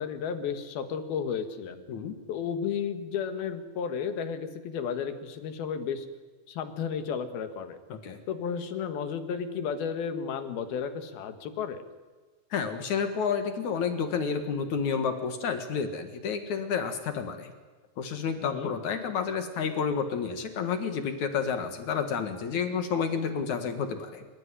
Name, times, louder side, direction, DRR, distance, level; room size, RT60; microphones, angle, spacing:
voice 1, 0.0-1.8 2.3-6.1 6.5-7.8 8.3-11.8 18.4-18.8, left 7 dB, 80° left, 9 dB, 3.5 m, -33 dB
voice 2, 12.5-17.5 18.0-24.3, left 6 dB, 60° left, 8 dB, 2.8 m, -30 dB
28.0 x 16.0 x 10.0 m, 1.3 s
omnidirectional pair, 4.3 m